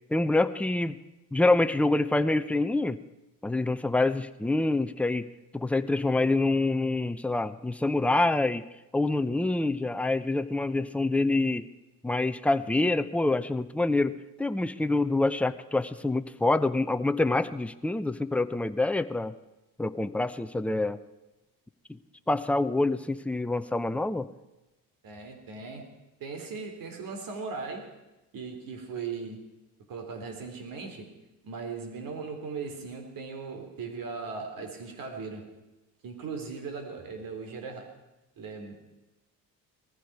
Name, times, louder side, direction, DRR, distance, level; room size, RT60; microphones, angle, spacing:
voice 1, 0.1-1.0 1.3-3.0 3.4-5.3 5.5-8.6 8.9-11.7 12.0-19.3 19.8-21.0 21.9-22.0 22.3-24.3, left 2 dB, 5° left, 10 dB, 0.6 m, -26 dB
voice 2, 25.0-25.9 26.2-27.9 28.3-29.5 29.9-31.1 31.4-35.5 36.0-37.9 38.4-38.7, right 4 dB, 65° right, 5 dB, 3.3 m, -38 dB
19.0 x 15.0 x 4.8 m, 1.0 s
cardioid pair, 110°, 36 cm